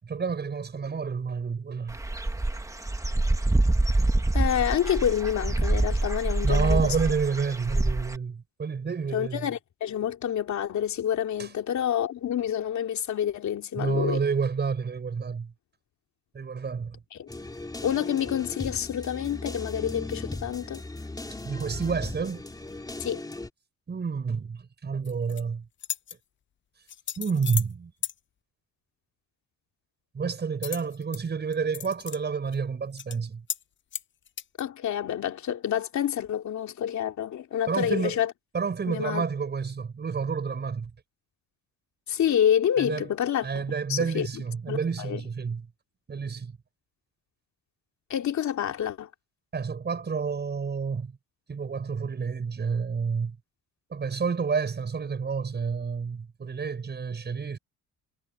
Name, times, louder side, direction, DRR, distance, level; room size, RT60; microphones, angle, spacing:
voice 1, 0.0-2.0 2.5-2.6 6.4-9.5 11.4-11.5 13.7-15.5 16.3-17.0 21.4-22.4 23.9-25.7 27.2-27.9 30.1-33.4 37.7-38.2 38.5-40.9 42.8-43.1 43.4-45.7 46.1-46.6 49.5-51.2 51.5-53.4 53.9-57.6, right 5 dB, 30° right, 6.4 m, -29 dB
Dog / Bird, 1.9-8.2, right 2 dB, 10° right, 1.4 m, -25 dB
voice 2, 4.3-6.9 9.1-14.2 17.1-17.3 17.8-20.8 23.0-23.2 34.6-38.3 38.9-39.2 42.1-43.6 43.9-44.4 44.7-45.2 48.1-49.1, left 10 dB, 55° left, 3.0 m, -28 dB
sound 1, 17.3-23.5, left 2 dB, 10° left, 2.8 m, -37 dB
sound 2, 25.0-25.4 25.8-26.2 26.9-27.7 28.0-28.1 30.6-31.2 31.5-32.2 32.5-32.6 33.0-33.2 33.5-33.6 33.9-34.6, left 9 dB, 35° left, 0.6 m, -35 dB
cardioid pair, 130°, 34 cm